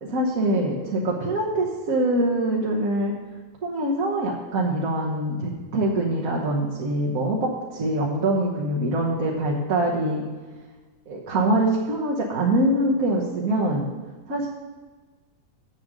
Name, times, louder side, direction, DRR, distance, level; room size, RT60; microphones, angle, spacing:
voice 1, 0.0-3.1 3.6-10.2 11.1-13.9 14.3-14.5, right 1 dB, 50° right, -3 dB, 1.6 m, -24 dB
7.8 x 7.7 x 7.6 m, 1.3 s
omnidirectional pair, 2.0 m